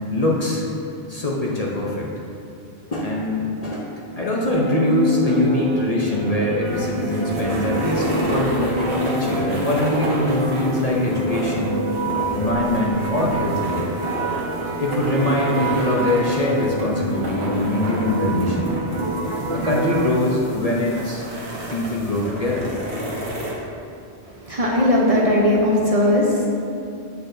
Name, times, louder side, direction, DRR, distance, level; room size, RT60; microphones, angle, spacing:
voice 1, 0.1-0.6 1.1-2.1 2.9-3.9 4.2-11.9 12.3-13.9 14.8-18.7 19.5-21.2 21.7-22.7, left 1 dB, 40° left, -3 dB, 0.7 m, -23 dB
sound 1, 4.5-20.1, right 1 dB, 55° right, 0.3 m, -27 dB
sound 2, 6.6-23.5, right 1 dB, 85° right, 1.3 m, -30 dB
voice 2, 24.2-26.5, left 1 dB, 40° right, -4 dB, 0.8 m, -18 dB
8.0 x 6.4 x 2.6 m, 2.5 s
omnidirectional pair, 1.1 m